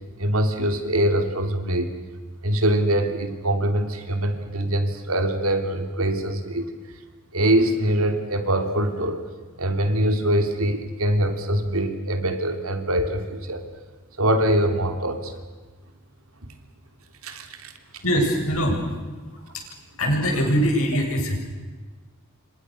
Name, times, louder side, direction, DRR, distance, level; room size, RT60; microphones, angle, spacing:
voice 1, 0.2-1.9 2.4-6.7 7.3-9.2 9.6-13.6 14.2-15.3 17.2-17.7, right 1 dB, 65° right, 7 dB, 3.2 m, -23 dB
voice 2, 18.0-18.8 19.5-19.6 20.0-21.4, equal, 70° left, 1 dB, 7.9 m, -22 dB
29.0 x 26.5 x 6.5 m, 1.4 s
head